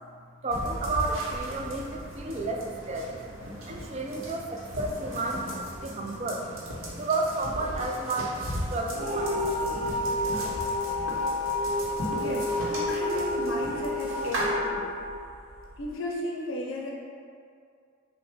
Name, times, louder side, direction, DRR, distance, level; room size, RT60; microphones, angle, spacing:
voice 1, 0.4-6.5 6.9-10.7, right 2 dB, 35° right, 1 dB, 0.4 m, -32 dB
sound 1, 0.5-14.5, equal, 85° right, 0.9 m, -37 dB
sound 2, 8.9-15.9, left 1 dB, 50° right, 0.9 m, -29 dB
voice 2, 12.1-14.8 15.8-16.9, left 1 dB, 75° left, -2 dB, 0.5 m, -34 dB
5.5 x 2.1 x 3.4 m, 2.3 s
head